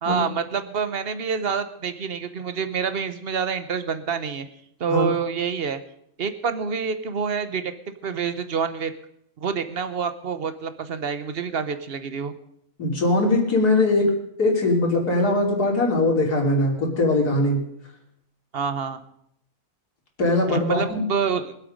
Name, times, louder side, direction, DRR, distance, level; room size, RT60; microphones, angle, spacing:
voice 1, 0.0-4.5 4.8-5.8 6.2-8.9 9.4-12.3 18.5-19.0 20.5-21.5, right 6 dB, 45° right, 11 dB, 1.0 m, -27 dB
voice 2, 12.8-14.1 14.4-17.6 20.2-21.0, left 2 dB, 80° left, -1 dB, 3.6 m, -21 dB
23.0 x 8.1 x 5.2 m, 0.73 s
omnidirectional pair, 1.6 m